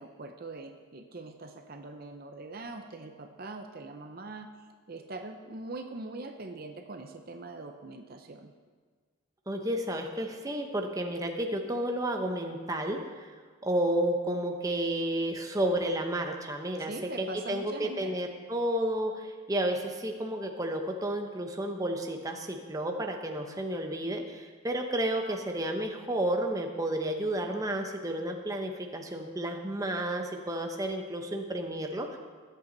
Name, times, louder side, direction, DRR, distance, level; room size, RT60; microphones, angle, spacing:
voice 1, 0.0-4.5 4.9-8.5 16.8-18.1, right 2 dB, 45° right, 5 dB, 0.7 m, -42 dB
voice 2, 9.5-13.3 13.6-16.9 17.2-32.2, right 1 dB, 15° right, 3 dB, 0.9 m, -31 dB
20.5 x 8.2 x 4.0 m, 1.5 s
head